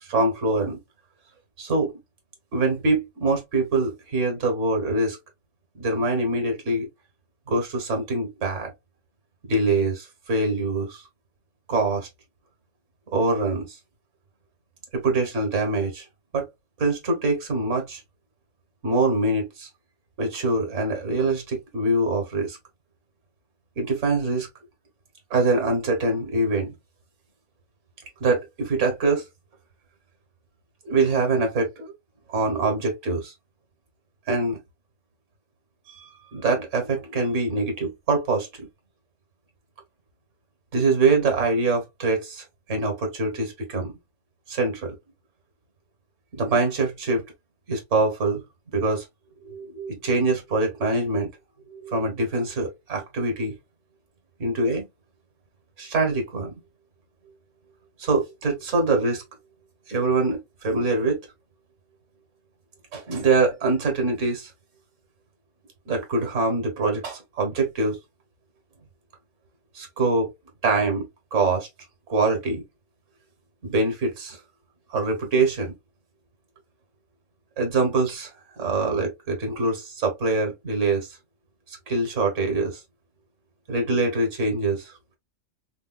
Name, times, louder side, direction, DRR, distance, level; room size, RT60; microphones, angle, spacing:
voice 1, 0.0-0.8 1.6-1.9 2.5-5.2 5.8-6.9 7.5-8.7 9.4-11.0 11.7-12.1 13.1-13.8 14.9-16.0 16.3-16.5 16.8-18.0 18.8-19.7 20.2-22.6 23.8-24.5 25.3-26.7 28.2-29.2 30.8-31.9 32.3-33.3 34.3-34.6 35.9-38.7 40.7-43.9 44.5-44.9 46.3-47.3 47.7-48.4 48.7-49.0 49.5-51.3 51.7-53.6 54.4-54.9 55.8-56.5 58.0-59.2 59.9-61.3 62.9-64.5 65.9-68.0 69.7-70.3 70.6-71.7 72.1-72.6 73.6-74.4 74.9-75.7 77.6-78.3 78.6-81.1 81.7-82.8 83.7-84.9, right 3 dB, 70° right, 1.6 m, -24 dB
4.7 x 2.3 x 2.3 m
omnidirectional pair, 1.3 m